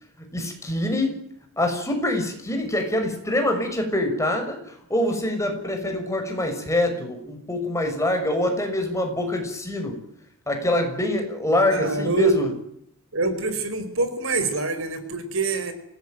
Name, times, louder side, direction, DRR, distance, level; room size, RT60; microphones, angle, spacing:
voice 1, 0.2-1.1 1.6-9.9 10.5-12.5, left 1 dB, 15° left, 4 dB, 6.5 m, -25 dB
voice 2, 11.5-12.5 13.1-15.7, right 3 dB, 60° right, 10 dB, 4.9 m, -25 dB
26.0 x 19.0 x 9.4 m, 0.71 s
head